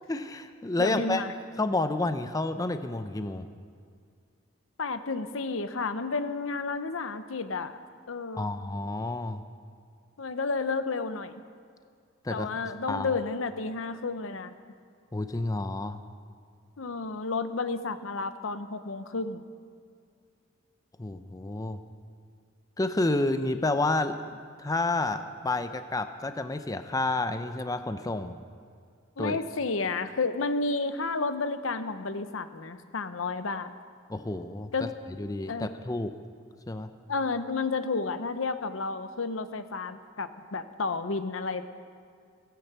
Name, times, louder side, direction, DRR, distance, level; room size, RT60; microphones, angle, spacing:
voice 1, 0.1-1.2 1.6-3.5 8.4-9.4 12.2-12.5 12.9-13.2 15.1-16.0 21.0-21.8 22.8-28.4 29.2-29.4 34.1-34.9 35.2-36.1 36.7-36.9, left 2 dB, 20° left, 9 dB, 0.6 m, -30 dB
voice 2, 0.8-1.3 4.8-7.8 8.1-8.5 10.2-11.4 12.3-14.5 16.8-19.4 29.2-33.7 34.7-34.9 35.5-35.7 37.1-41.7, left 3 dB, 80° left, 10 dB, 0.9 m, -31 dB
16.0 x 10.5 x 8.1 m, 2.2 s
head